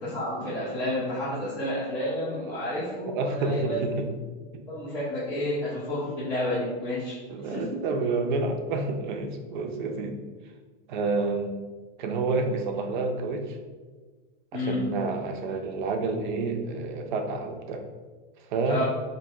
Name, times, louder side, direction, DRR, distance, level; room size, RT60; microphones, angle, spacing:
voice 1, 0.0-3.8 4.7-7.1 7.4-7.6 14.5-14.8 18.7-18.8, left 1 dB, 15° left, -11 dB, 0.4 m, -30 dB
voice 2, 2.3-2.7 3.1-4.1 4.5-4.6 7.3-10.2 10.9-11.6 12.0-13.6 14.5-17.8 18.5-18.8, right 3 dB, 55° right, 5 dB, 0.4 m, -29 dB
3.9 x 2.6 x 2.3 m, 1.4 s
supercardioid pair, 170°, 29 cm